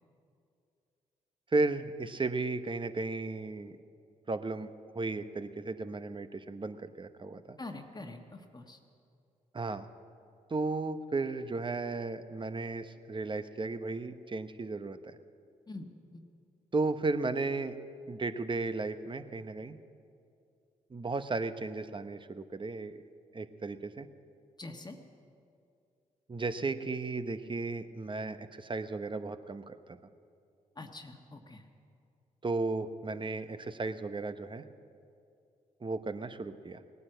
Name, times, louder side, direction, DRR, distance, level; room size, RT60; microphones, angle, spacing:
voice 1, 1.5-3.8 4.3-4.7 4.9-7.6 9.5-9.9 10.5-15.2 16.7-17.8 18.1-19.8 20.9-22.9 23.3-24.1 26.3-29.7 32.4-34.6 35.8-36.8, right 3 dB, 30° right, 10 dB, 0.9 m, -34 dB
voice 2, 7.6-8.8 15.7-16.2 24.6-25.0 30.8-31.7, left 2 dB, 25° left, 4 dB, 1.4 m, -45 dB
18.0 x 9.6 x 7.8 m, 2.5 s
supercardioid pair, 50°, 15 cm